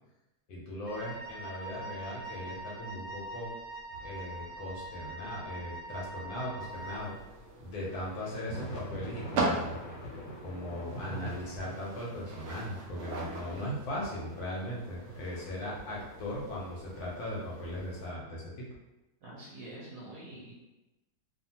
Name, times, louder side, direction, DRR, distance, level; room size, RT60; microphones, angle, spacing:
voice 1, 0.5-3.5 4.0-7.1 7.6-9.8 10.4-18.6, left 1 dB, 70° left, -5 dB, 1.1 m, -38 dB
Wind instrument woodwind instrument, 0.9-7.2, right 2 dB, 20° right, 0.8 m, -43 dB
sound 1, 3.9-7.1 7.8-16.4, equal, 85° left, 1.3 m, -46 dB
sound 2, 6.6-18.1, right 2 dB, 85° right, 0.6 m, -40 dB
voice 2, 19.2-20.5, right 1 dB, 65° right, -5 dB, 1.0 m, -46 dB
2.7 x 2.4 x 2.7 m, 1.0 s
omnidirectional pair, 1.9 m